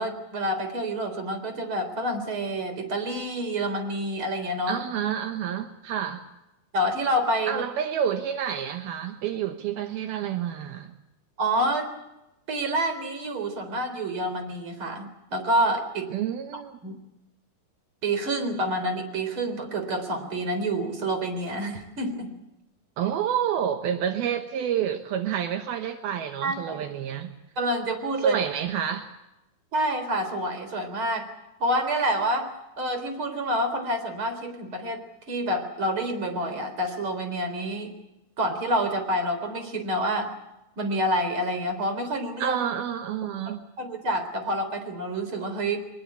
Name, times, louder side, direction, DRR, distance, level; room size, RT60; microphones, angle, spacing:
voice 1, 0.0-4.8 6.7-7.6 11.4-11.9 12.5-16.1 16.5-16.9 18.0-22.3 26.4-26.8 27.6-28.4 29.7-31.3 31.6-32.5 32.8-37.9 38.4-40.3 40.8-42.6 43.5-45.8, right 1 dB, 35° right, 7 dB, 4.3 m, -28 dB
voice 2, 4.7-6.2 7.5-10.9 16.1-16.8 23.0-27.3 28.2-29.1 42.4-43.6, right 9 dB, 75° right, 7 dB, 3.0 m, -28 dB
23.0 x 21.5 x 8.2 m, 0.92 s
omnidirectional pair, 4.5 m